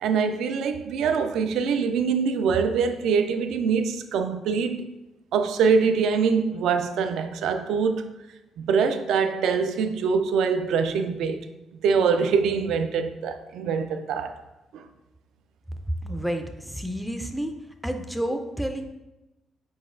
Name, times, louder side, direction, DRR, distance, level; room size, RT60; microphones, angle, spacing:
voice 1, 0.0-4.9 5.3-8.0 8.6-11.4 11.8-14.4 14.7-14.8, right 5 dB, 80° right, 0.3 m, -24 dB
voice 2, 16.0-17.6 17.8-18.9, equal, ahead, 0.3 m, -30 dB
4.4 x 3.9 x 2.5 m
cardioid pair, 90°, 0 cm